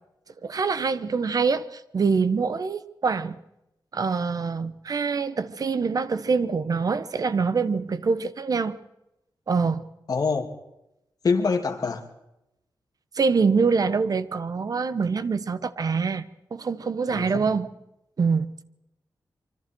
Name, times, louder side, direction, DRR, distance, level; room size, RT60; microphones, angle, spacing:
voice 1, 0.4-3.4 3.9-8.8 9.5-9.8 13.1-16.3 16.5-17.7 18.2-18.5, right 5 dB, 50° right, 1.1 m, -25 dB
voice 2, 10.1-10.5 11.2-12.0 17.1-17.4, left 4 dB, 50° left, 2.8 m, -25 dB
26.0 x 24.5 x 4.7 m
wide cardioid pair, 145°, 8 cm